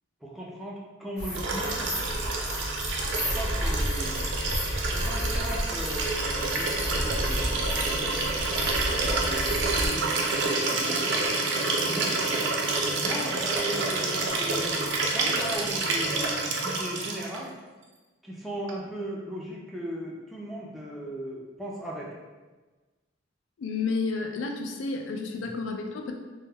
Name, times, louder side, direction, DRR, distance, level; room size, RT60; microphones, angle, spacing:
voice 1, 0.2-2.2 3.3-4.2 4.9-8.1 8.5-11.2 11.8-12.2 12.9-17.5 18.2-22.1 25.4-25.5, right 1 dB, ahead, -5 dB, 0.3 m, -38 dB
sound 1, 1.2-9.9, equal, 15° left, 0.7 m, -31 dB
Liquid, 1.3-17.4 18.7-18.8, right 3 dB, 70° right, 0.4 m, -28 dB
voice 2, 23.6-26.1, left 4 dB, 90° left, 3 dB, 0.3 m, -31 dB
2.1 x 2.1 x 3.3 m, 1.3 s
head